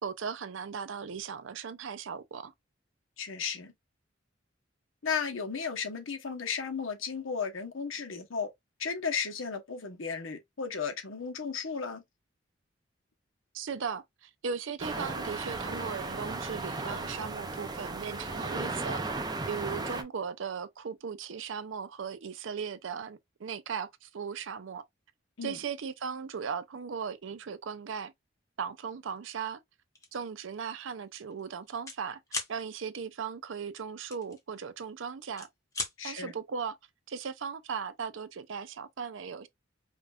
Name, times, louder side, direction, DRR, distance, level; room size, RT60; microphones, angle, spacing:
voice 1, 0.0-2.5 13.5-19.0 19.5-24.9 25.4-28.1 28.6-29.6 30.1-32.2 32.5-35.5 36.0-36.8 37.1-39.5, right 6 dB, 70° right, 0.5 m, -37 dB
voice 2, 3.2-3.7 5.0-8.5 8.8-12.0 25.4-25.6 36.0-36.3, left 6 dB, 85° left, 1.0 m, -34 dB
sound 1, 14.8-20.0, right 3 dB, 20° right, 0.5 m, -35 dB
sound 2, 30.0-30.2 30.6-30.8 31.1-32.0 32.3-32.5 34.1-34.9 35.2-35.9, left 3 dB, 15° left, 0.9 m, -37 dB
5.0 x 2.5 x 2.4 m
head